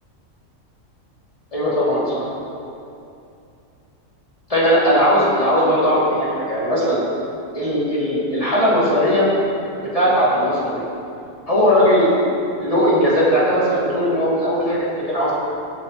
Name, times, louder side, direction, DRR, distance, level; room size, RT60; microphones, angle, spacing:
voice 1, 1.5-2.3 4.5-7.0 7.5-9.3 9.8-10.8 11.5-12.1 12.6-15.3, equal, 25° left, -8 dB, 2.5 m, -18 dB
16.0 x 8.3 x 2.9 m, 2.6 s
omnidirectional pair, 1.4 m